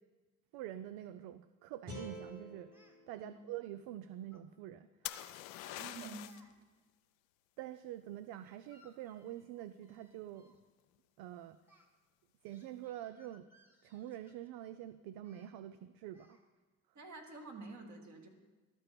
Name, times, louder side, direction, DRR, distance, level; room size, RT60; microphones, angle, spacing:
voice 1, 0.5-2.7 3.1-4.9 6.0-6.2 7.6-10.6 11.2-11.6 12.4-13.5 13.8-16.4, right 12 dB, 60° right, 12 dB, 0.5 m, -46 dB
sound 1, 1.9-5.0, right 1 dB, 85° right, 2.2 m, -51 dB
Speech, 2.7-3.0 4.3-4.5 5.0-5.3 5.6-6.5 6.8-6.9 8.4-10.6 11.7-11.8 12.5-14.6 15.2-15.5 16.1-16.5, left 1 dB, 5° right, 1.5 m, -64 dB
sound 2, 5.1-6.5 10.2-10.6, left 15 dB, 70° left, 0.6 m, -44 dB
voice 2, 5.8-6.3 16.9-18.3, right 3 dB, 40° right, 2 dB, 2.0 m, -48 dB
12.5 x 4.6 x 6.7 m, 1.3 s
hypercardioid pair, 55°, 43 cm